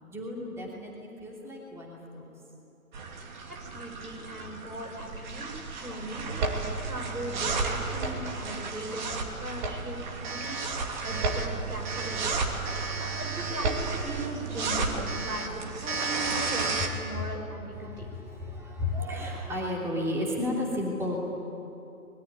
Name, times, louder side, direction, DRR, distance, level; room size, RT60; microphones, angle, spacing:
voice 1, 0.0-2.3 17.7-21.3, left 1 dB, 5° right, -2 dB, 2.9 m, -33 dB
sound 1, 2.9-16.9, right 3 dB, 30° right, 2.8 m, -32 dB
voice 2, 3.5-18.1, right 1 dB, 85° right, 1 dB, 7.0 m, -39 dB
25.0 x 21.5 x 9.5 m, 2.9 s
figure-of-eight pair, 135°, 44 cm